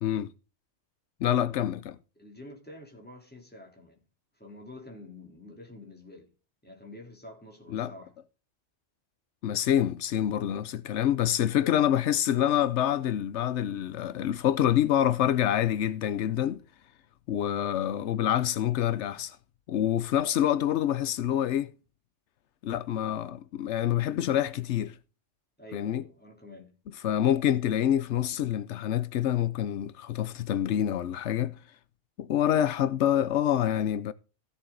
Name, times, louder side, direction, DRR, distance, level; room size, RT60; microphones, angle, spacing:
voice 1, 0.0-0.3 1.2-2.0 7.7-7.9 9.4-16.6 17.3-19.4 19.7-21.7 22.6-24.9 25.7-26.0 27.0-31.6 32.2-34.1, left 11 dB, 85° left, 1.0 m, -26 dB
voice 2, 2.1-4.0 4.3-6.3 6.6-8.1 25.6-26.7, left 1 dB, 10° left, 3.4 m, -48 dB
16.0 x 7.1 x 3.8 m
omnidirectional pair, 1.2 m